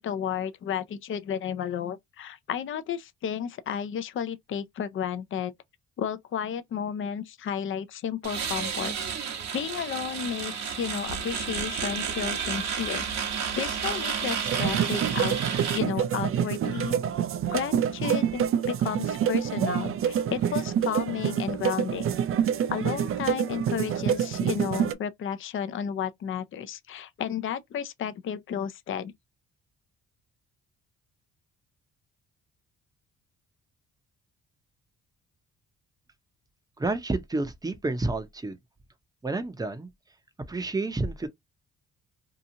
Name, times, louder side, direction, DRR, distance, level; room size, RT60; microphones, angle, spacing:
voice 1, 0.0-5.5 6.0-8.9 9.2-13.2 13.6-15.4 15.7-17.0 17.5-22.1 22.7-29.1, left 8 dB, 45° left, 0.5 m, -32 dB
sound 1, 8.2-15.8, right 7 dB, 65° right, 1.0 m, -31 dB
sound 2, 14.4-24.9, right 9 dB, 45° right, 0.4 m, -27 dB
voice 2, 36.8-38.6 39.2-39.9 40.5-41.3, right 2 dB, 15° right, 0.7 m, -29 dB
2.9 x 2.4 x 2.7 m
cardioid pair, 90°, 30 cm